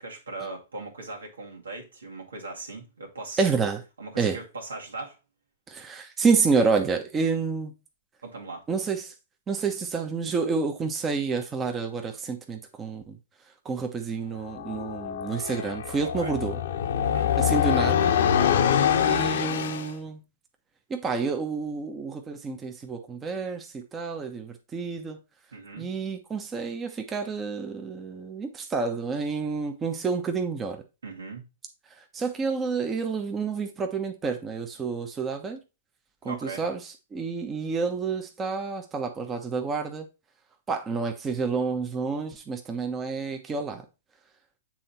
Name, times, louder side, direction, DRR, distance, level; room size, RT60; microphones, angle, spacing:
voice 1, 0.0-3.5 4.0-5.2 8.2-8.6 16.2-16.3 17.0-17.3 25.5-25.9 31.0-31.4 36.2-36.6, right 3 dB, 85° right, 2.2 m, -39 dB
voice 2, 3.4-3.8 4.2-4.4 5.7-7.7 8.7-9.1 9.5-13.2 13.6-16.6 17.4-18.1 19.0-20.2 20.9-25.2 25.7-30.8 31.9-35.6 36.2-40.1 40.7-43.8, right 5 dB, 20° right, 1.1 m, -29 dB
sound 1, 14.5-19.9, left 9 dB, 65° left, 0.9 m, -25 dB
7.6 x 3.9 x 4.3 m
hypercardioid pair, 120°, 0 cm